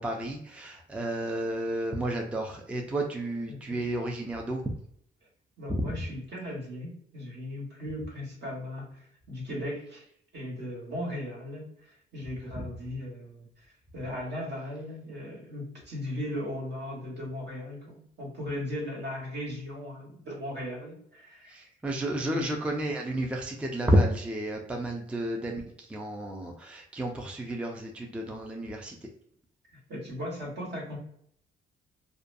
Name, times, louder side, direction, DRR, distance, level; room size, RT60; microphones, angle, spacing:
voice 1, 0.0-4.6 5.7-6.0 21.5-29.1, right 1 dB, 5° right, 1 dB, 0.4 m, -31 dB
voice 2, 3.5-3.8 5.6-10.1 10.3-13.7 13.9-21.7 22.3-22.5 29.9-31.0, left 1 dB, 60° right, -3 dB, 1.3 m, -37 dB
2.4 x 2.2 x 2.5 m, 0.68 s
cardioid pair, 90°, 20 cm